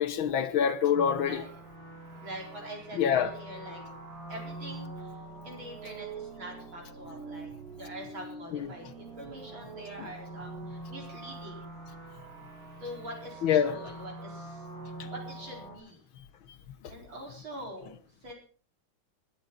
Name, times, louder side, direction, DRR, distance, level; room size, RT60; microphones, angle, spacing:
voice 1, 0.0-1.4 3.0-3.3 8.5-8.7 13.4-13.8 15.0-15.1, left 8 dB, 65° left, 1.2 m, -26 dB
sound 1, 1.0-15.8, right 2 dB, 55° right, 5.7 m, -44 dB
voice 2, 2.2-3.8 4.3-5.1 5.4-7.5 7.8-11.8 12.8-14.7 15.1-16.0 16.9-17.9 18.2-18.3, right 1 dB, 40° right, 5.1 m, -44 dB
20.0 x 14.0 x 4.1 m
omnidirectional pair, 3.5 m